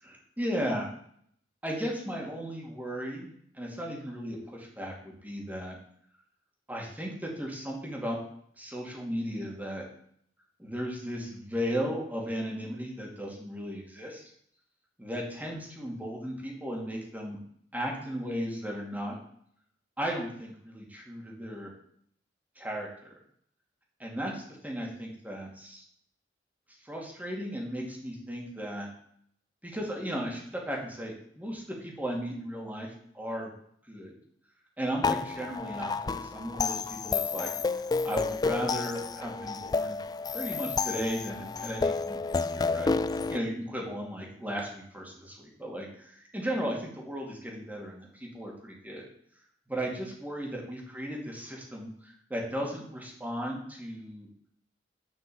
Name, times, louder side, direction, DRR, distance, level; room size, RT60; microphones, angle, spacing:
voice 1, 0.0-0.9 1.6-3.3 3.5-5.8 6.7-8.2 8.6-9.8 10.6-14.2 15.0-17.4 17.7-19.1 20.0-21.7 22.6-23.1 24.0-25.8 26.8-28.9 29.6-32.9 33.1-33.5 33.9-34.1 34.8-37.5 38.0-40.0 40.3-42.9 43.3-49.1 49.7-54.3, equal, 10° right, -1 dB, 2.6 m, -35 dB
sound 1, 35.0-43.4, left 4 dB, 20° left, 0.3 m, -30 dB
10.5 x 5.9 x 7.2 m, 0.66 s
head